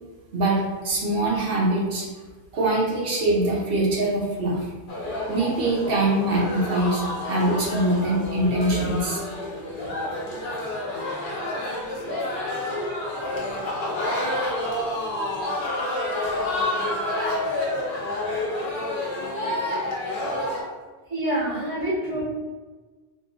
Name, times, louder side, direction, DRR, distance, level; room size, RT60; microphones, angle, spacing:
voice 1, 0.3-2.1 2.5-4.7 5.3-9.2, right 1 dB, 60° right, -3 dB, 0.8 m, -23 dB
sound 1, 4.9-20.6, left 1 dB, 55° left, 0.8 m, -29 dB
voice 2, 21.1-22.2, right 1 dB, 80° right, -9 dB, 1.6 m, -27 dB
3.6 x 2.5 x 2.6 m, 1.3 s
omnidirectional pair, 1.2 m